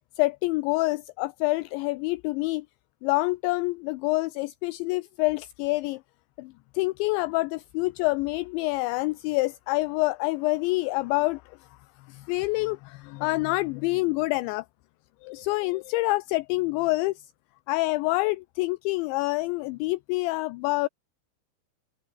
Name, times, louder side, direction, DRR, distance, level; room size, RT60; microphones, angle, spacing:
voice 1, 0.2-2.7 3.0-6.0 6.4-11.4 12.1-14.6 15.2-17.1 17.7-20.9, left 22 dB, 85° left, 2.7 m, -27 dB
open air
omnidirectional pair, 5.5 m